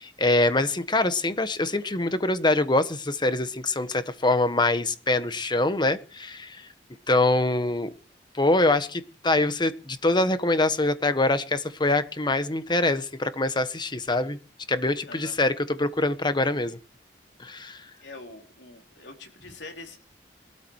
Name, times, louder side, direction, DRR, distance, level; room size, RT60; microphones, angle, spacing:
voice 1, 0.0-6.7 7.1-7.9 8.3-14.4 14.7-16.8 17.4-17.8, left 2 dB, 25° left, 1.3 m, -24 dB
voice 2, 18.0-20.0, left 2 dB, 75° left, 3.8 m, -44 dB
22.5 x 13.5 x 4.8 m
head